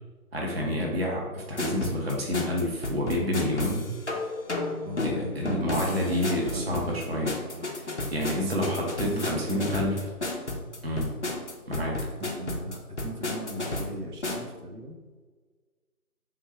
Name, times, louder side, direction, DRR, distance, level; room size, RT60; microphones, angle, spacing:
voice 1, 0.3-3.9 5.0-7.3 7.8-10.0 10.8-11.1 11.7-12.0, left 1 dB, 45° right, -2 dB, 0.5 m, -29 dB
sound 1, 1.6-14.5, left 2 dB, 50° left, 0.5 m, -32 dB
voice 2, 4.8-7.7 8.3-10.0 12.2-15.0, equal, 90° right, 3 dB, 0.8 m, -39 dB
3.5 x 2.2 x 4.3 m, 1.4 s
figure-of-eight pair, 170°, 45 cm